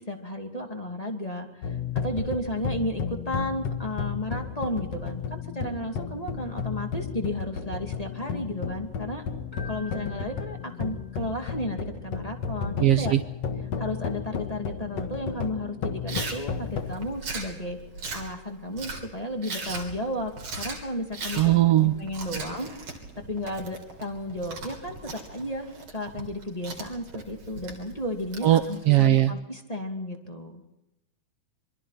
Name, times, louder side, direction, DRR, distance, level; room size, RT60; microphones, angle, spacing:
voice 1, 0.0-9.2 9.6-13.1 13.8-17.8 18.1-20.3 20.6-22.7 23.3-30.6, left 1 dB, 15° left, 3 dB, 2.2 m, -33 dB
sound 1, 1.6-17.0, left 6 dB, 55° left, 2.5 m, -33 dB
Keyboard (musical), 9.5-11.3, left 1 dB, 5° right, 5.1 m, -47 dB
voice 2, 12.8-13.2 21.4-21.9 28.4-29.3, right 14 dB, 85° right, 10 dB, 1.3 m, -19 dB
Chewing mastication, 16.1-29.1, right 3 dB, 55° right, 4.3 m, -39 dB
26.5 x 24.0 x 4.3 m, 0.94 s
omnidirectional pair, 3.8 m